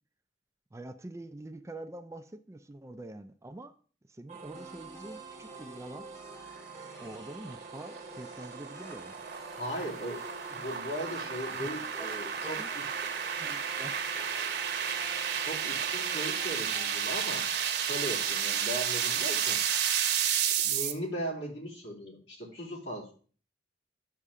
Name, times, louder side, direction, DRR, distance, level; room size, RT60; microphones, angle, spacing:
voice 1, 0.7-3.7 4.1-6.1 7.0-9.2 11.5-11.7 12.0-12.1 12.6-12.7 13.4-14.0, right 1 dB, 15° right, 8 dB, 0.4 m, -45 dB
sound 1, 4.3-16.5, right 5 dB, 40° right, 0.9 m, -48 dB
sound 2, 4.5-17.3, left 3 dB, 15° left, 1.0 m, -54 dB
sound 3, 7.0-20.9, right 8 dB, 60° right, 1.1 m, -32 dB
voice 2, 9.5-12.8 15.4-17.5 17.7-19.6 20.6-23.1, equal, 70° left, -3 dB, 2.9 m, -38 dB
9.8 x 6.7 x 3.7 m, 0.42 s
head